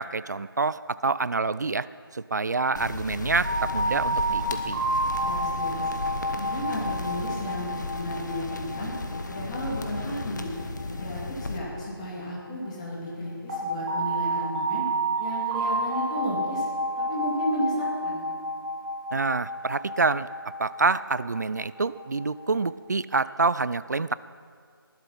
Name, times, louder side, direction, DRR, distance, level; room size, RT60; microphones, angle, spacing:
voice 1, 0.0-1.9 2.1-4.8 19.1-20.3 20.6-24.1, right 4 dB, 45° right, 17 dB, 0.4 m, -27 dB
sound 1, 2.8-11.6, left 2 dB, 50° left, 1.2 m, -35 dB
sound 2, 3.4-12.2 13.5-22.6, right 1 dB, 30° right, 2.5 m, -31 dB
voice 2, 5.2-5.8 6.3-8.9 9.2-10.5 10.9-14.9 15.2-16.6 16.9-18.3, equal, 15° left, -5 dB, 2.5 m, -33 dB
19.5 x 12.0 x 4.2 m, 2.1 s
figure-of-eight pair, 165°, 13 cm